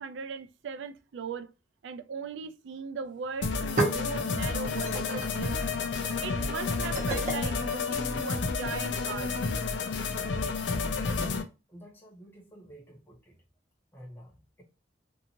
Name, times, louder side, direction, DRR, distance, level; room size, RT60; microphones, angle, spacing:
voice 1, 0.0-1.5 1.8-5.6 6.2-9.4, right 5 dB, 80° right, 0.4 m, -38 dB
sound 1, 3.1-3.2 3.4-8.6, right 2 dB, 40° right, 1.0 m, -36 dB
sound 2, 3.4-11.4, left 4 dB, 70° left, 0.5 m, -30 dB
voice 2, 11.7-13.4 13.9-14.6, equal, 10° left, 1.0 m, -50 dB
2.7 x 2.5 x 2.8 m
head